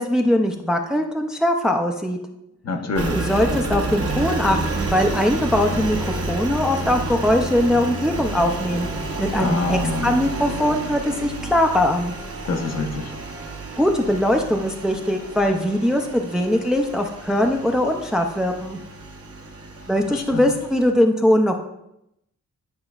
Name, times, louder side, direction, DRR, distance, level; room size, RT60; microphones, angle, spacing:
voice 1, 0.0-2.2 3.1-6.0 6.3-8.9 9.2-12.1 13.8-18.8 19.9-21.6, left 1 dB, ahead, 4 dB, 0.4 m, -21 dB
voice 2, 2.6-3.2 9.4-10.2 12.4-13.1 20.1-20.4, left 3 dB, 55° left, 4 dB, 0.8 m, -26 dB
Engine, 2.9-20.9, right 2 dB, 50° right, 1.0 m, -30 dB
9.6 x 5.0 x 2.4 m, 0.82 s
wide cardioid pair, 135°, 31 cm